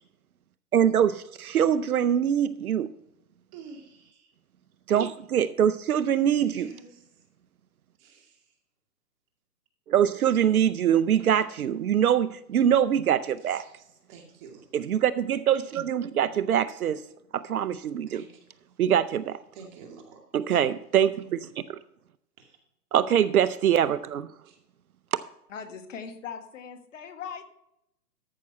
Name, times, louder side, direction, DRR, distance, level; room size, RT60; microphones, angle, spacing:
voice 1, 0.7-2.9 4.9-6.7 9.9-13.6 14.7-17.0 17.3-18.2 18.8-19.4 20.3-21.8 22.9-24.3, right 9 dB, 65° right, 15 dB, 0.7 m, -24 dB
voice 2, 3.5-4.3 6.5-6.9 8.0-8.3 13.6-13.7 14.1-14.7 18.1-18.3 19.5-20.2 22.4-22.5 24.5-24.6, right 5 dB, 30° right, 2 dB, 2.4 m, -48 dB
voice 3, 25.5-27.5, left 6 dB, 50° left, 8 dB, 1.5 m, -40 dB
13.5 x 6.1 x 4.2 m, 0.81 s
hypercardioid pair, 150°, 47 cm